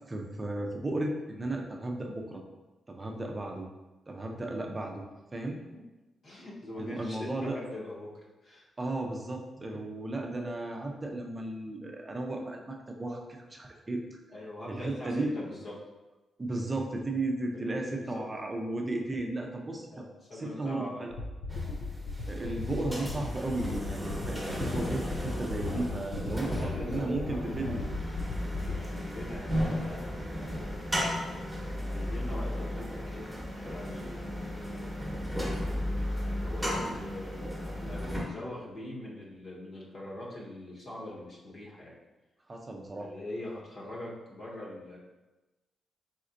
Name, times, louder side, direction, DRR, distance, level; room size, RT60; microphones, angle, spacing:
voice 1, 0.1-2.4 2.9-3.7 4.1-5.0 5.3-5.6 6.8-7.6 8.8-14.0 14.7-15.3 16.4-20.1 20.3-21.1 22.3-27.8 42.5-43.1, right 2 dB, 20° right, 2 dB, 0.5 m, -34 dB
voice 2, 6.2-8.1 8.4-8.7 9.7-9.8 14.3-15.7 17.5-18.2 19.9-21.0 26.3-27.9 28.6-30.8 31.8-33.4 33.6-35.0 35.8-42.0 43.0-45.0, left 1 dB, 55° left, -4 dB, 1.1 m, -43 dB
sound 1, 21.1-28.8, left 3 dB, 85° left, 0.5 m, -38 dB
sound 2, 21.5-38.2, equal, ahead, 1.0 m, -35 dB
4.2 x 3.9 x 2.6 m, 1.1 s
cardioid pair, 125°, 0 cm